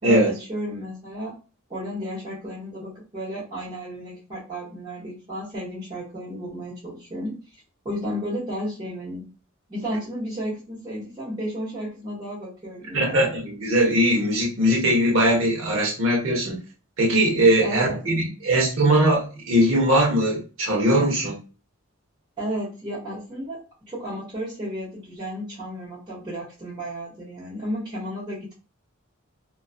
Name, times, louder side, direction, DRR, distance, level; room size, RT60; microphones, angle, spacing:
voice 1, 0.0-1.3 1.7-7.4 7.8-9.3 9.7-13.3 17.6-18.4 22.4-28.5, equal, 25° right, 1.1 m, -33 dB
voice 2, 12.9-16.6 17.0-21.4, right 1 dB, 70° right, 0.8 m, -20 dB
2.4 x 2.3 x 2.4 m
head